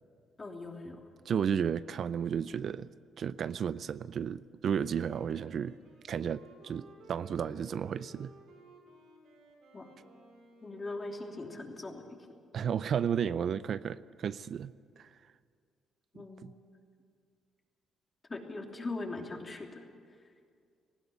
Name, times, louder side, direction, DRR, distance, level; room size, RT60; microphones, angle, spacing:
voice 1, 0.4-1.0 9.7-9.9 10.6-12.0 16.1-16.6 18.3-19.8, left 2 dB, 30° left, 2 dB, 3.1 m, -40 dB
voice 2, 1.3-2.9 3.2-5.8 6.1-8.3 12.5-14.7 15.0-15.1 16.2-16.5, right 8 dB, 60° right, 16 dB, 0.5 m, -33 dB
Wind instrument woodwind instrument, 4.7-11.4, right 2 dB, 80° right, 6.1 m, -56 dB
19.0 x 16.0 x 9.7 m, 2.1 s
cardioid pair, 90°, 0 cm